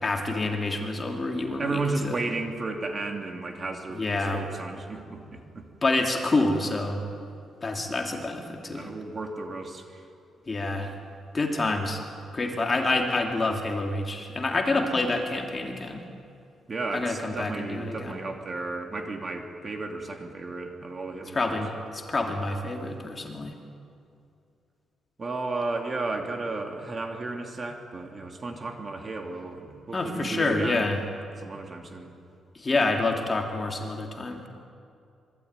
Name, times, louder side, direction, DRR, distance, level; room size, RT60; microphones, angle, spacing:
voice 1, 0.0-2.2 3.9-4.4 5.8-7.0 7.6-8.9 10.5-10.9 11.3-12.0 12.3-16.0 16.9-18.2 21.3-23.5 29.9-31.0 32.5-34.5, left 2 dB, 20° left, 2 dB, 2.7 m, -27 dB
voice 2, 1.6-4.0 4.3-5.7 8.7-10.0 16.7-21.5 25.2-31.0 31.4-32.2, right 3 dB, 25° right, 3 dB, 2.6 m, -33 dB
26.5 x 23.5 x 9.6 m, 2.5 s
cardioid pair, 155°, 0 cm